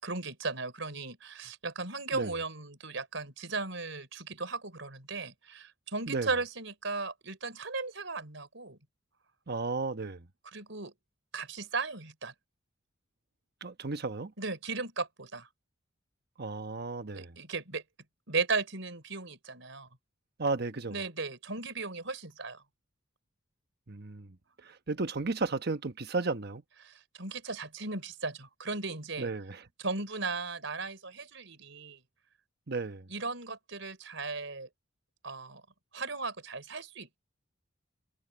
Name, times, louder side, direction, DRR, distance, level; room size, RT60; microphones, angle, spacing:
voice 1, 0.0-8.8 10.5-10.9 11.3-12.3 14.4-15.5 17.1-17.8 18.3-19.9 20.9-22.6 26.8-29.3 29.8-32.0 33.1-34.7 35.2-35.6 35.9-37.2, right 3 dB, 70° right, 5.6 m, -36 dB
voice 2, 9.5-10.3 13.6-14.3 16.4-17.4 20.4-21.0 23.9-26.6 29.2-29.6 32.7-33.1, right 3 dB, 55° right, 1.1 m, -34 dB
head